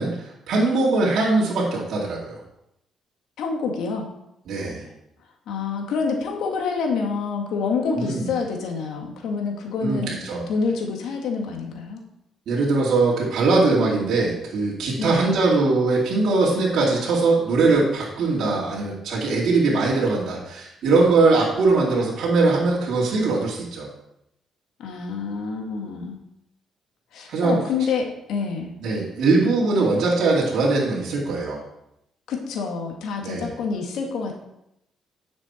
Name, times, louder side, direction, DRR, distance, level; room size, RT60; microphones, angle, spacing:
voice 1, 0.0-2.4 4.5-4.8 7.9-8.3 9.8-10.4 12.5-23.9 27.3-27.6 28.8-31.6 33.2-33.5, right 3 dB, 70° right, -6 dB, 2.6 m, -21 dB
voice 2, 3.4-4.1 5.5-10.2 10.5-12.0 15.0-15.2 24.8-26.2 27.1-28.8 32.3-34.3, left 5 dB, 80° left, 1 dB, 2.0 m, -27 dB
9.9 x 7.0 x 4.4 m, 0.82 s
cardioid pair, 90°, 0 cm